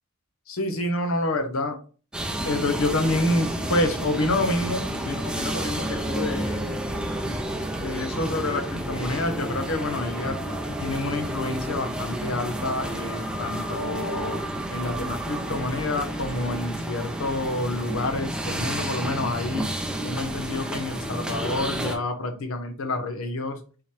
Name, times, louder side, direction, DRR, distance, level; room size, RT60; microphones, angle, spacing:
voice 1, 0.5-1.8 2.4-6.6 7.8-10.4 10.8-14.4 14.7-19.7 20.0-23.6, left 2 dB, 70° left, 6 dB, 0.9 m, -28 dB
sound 1, 2.1-22.0, right 1 dB, 5° right, 0.6 m, -30 dB
4.2 x 3.8 x 3.3 m, 0.38 s
head